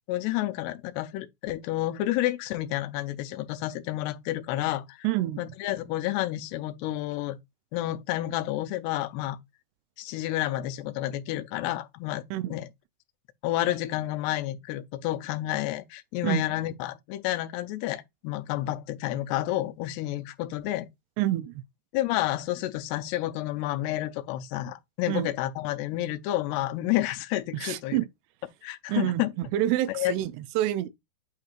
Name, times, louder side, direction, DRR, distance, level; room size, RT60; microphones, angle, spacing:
voice 1, 0.1-5.0 5.4-7.4 7.7-9.4 10.0-12.2 12.5-12.7 13.4-20.9 21.9-28.0 28.6-29.3 29.9-30.1, left 15 dB, 90° left, 2.7 m, -30 dB
voice 2, 5.0-5.5 12.3-12.6 16.2-16.4 21.2-21.6 25.1-25.3 27.6-28.1 28.9-29.3 29.5-30.9, right 14 dB, 85° right, 2.6 m, -27 dB
8.6 x 4.4 x 2.5 m
omnidirectional pair, 4.6 m